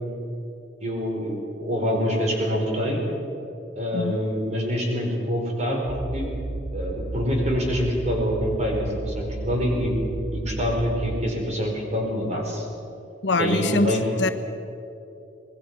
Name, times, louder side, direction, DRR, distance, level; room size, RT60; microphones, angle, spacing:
voice 1, 0.8-3.0 3.7-6.3 6.7-10.0 10.3-12.6 13.4-14.0, equal, 35° right, 0 dB, 4.9 m, -26 dB
sound 1, 5.9-11.3, right 2 dB, 20° right, 1.0 m, -33 dB
voice 2, 13.2-14.3, left 3 dB, 75° left, 7 dB, 1.2 m, -24 dB
26.0 x 20.5 x 6.1 m, 2.8 s
head